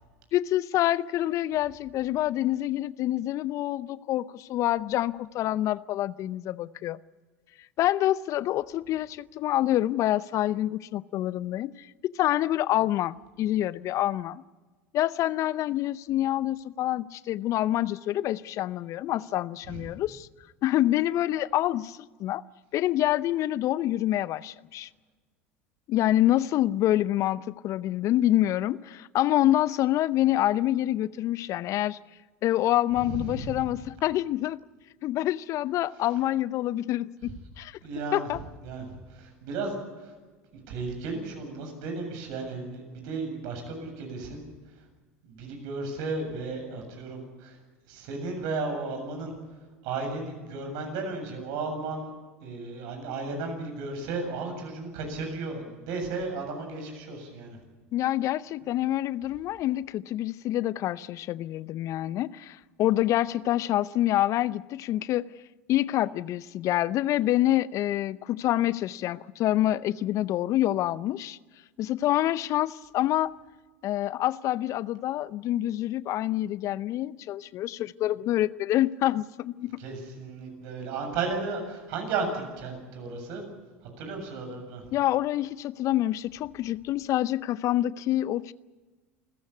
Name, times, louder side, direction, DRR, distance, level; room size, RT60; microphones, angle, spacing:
voice 1, 0.3-7.0 7.8-14.4 14.9-20.3 20.6-22.4 22.7-24.9 25.9-32.0 32.4-34.6 35.0-37.8 38.1-38.4 57.9-65.3 65.7-71.4 71.8-73.3 73.8-79.8 84.9-88.5, left 14 dB, 50° left, 19 dB, 0.6 m, -27 dB
voice 2, 33.0-33.6 37.8-38.3 38.6-39.8 40.7-44.4 45.2-47.6 47.9-49.3 49.8-52.1 52.4-57.6 58.6-58.7 79.8-83.4 84.0-84.8, right 3 dB, 60° right, 4 dB, 7.6 m, -34 dB
28.0 x 15.0 x 8.3 m, 1.3 s
hypercardioid pair, 75°, 7 cm